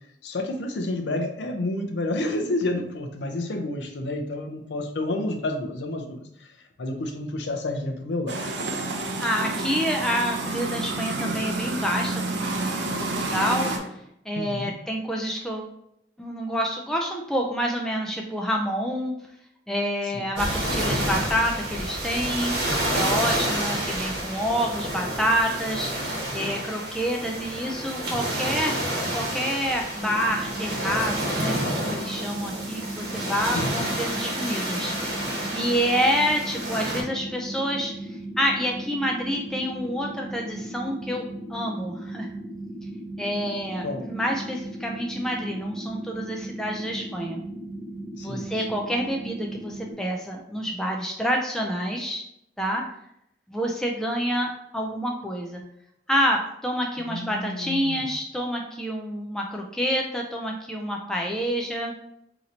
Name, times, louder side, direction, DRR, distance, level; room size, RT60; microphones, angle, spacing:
voice 1, 0.0-6.5 6.8-8.4 14.4-14.7 20.1-20.2 33.5-33.9 43.8-44.1 48.2-48.5 57.0-58.0, left 2 dB, 85° left, 4 dB, 0.5 m, -30 dB
sound 1, 8.3-13.8, right 2 dB, 85° right, 0.6 m, -29 dB
voice 2, 8.9-13.9 14.3-15.7 16.2-19.1 19.7-22.6 22.9-28.8 29.1-31.5 31.8-34.9 35.2-42.3 43.2-47.4 48.2-52.2 52.6-52.9 53.5-55.6 56.1-61.9, equal, 5° left, 0 dB, 0.3 m, -28 dB
sound 2, 20.4-37.0, right 1 dB, 70° right, 1.0 m, -29 dB
sound 3, 30.0-49.9, right 1 dB, 30° right, 1.2 m, -37 dB
2.8 x 2.6 x 4.2 m, 0.75 s
head